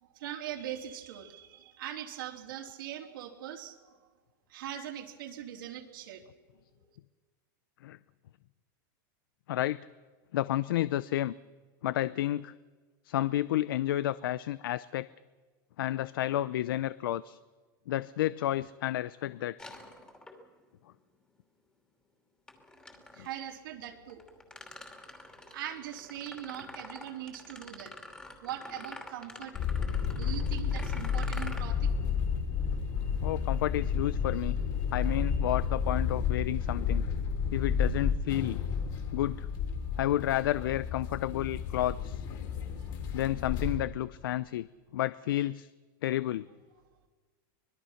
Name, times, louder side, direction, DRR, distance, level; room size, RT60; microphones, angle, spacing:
voice 1, 0.0-4.0 4.5-6.2 6.8-6.9 23.1-24.7 25.4-27.9 28.4-29.5 30.1-31.9 42.8-42.9, right 11 dB, 75° right, 3 dB, 3.4 m, -41 dB
voice 2, 9.5-9.9 10.3-11.3 11.8-12.5 13.1-15.1 15.8-17.4 17.9-19.6 33.2-34.6 34.9-37.0 37.5-38.6 39.1-39.5 40.0-42.3 43.1-44.7 44.9-45.7 46.0-46.5, left 13 dB, 85° left, 17 dB, 0.6 m, -31 dB
sound 1, 19.6-20.7 22.5-23.3 24.1-31.6, left 2 dB, 5° left, 2.8 m, -47 dB
sound 2, 29.5-43.8, left 6 dB, 35° left, 3.5 m, -31 dB
25.0 x 20.5 x 5.8 m, 1.4 s
supercardioid pair, 155°, 11 cm